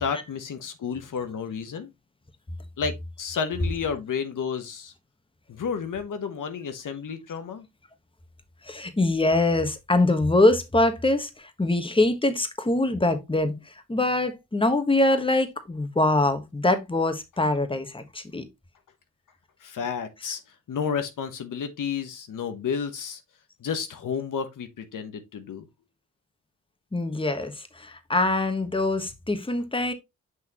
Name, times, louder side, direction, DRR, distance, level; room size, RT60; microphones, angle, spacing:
voice 1, 0.0-1.9 2.8-4.9 5.5-7.7 19.6-23.2 23.6-25.6, left 6 dB, 75° left, 1.0 m, -31 dB
voice 2, 8.6-18.4 26.9-29.9, left 2 dB, 15° left, 1.3 m, -24 dB
6.2 x 5.7 x 2.9 m
cardioid pair, 65°, 32 cm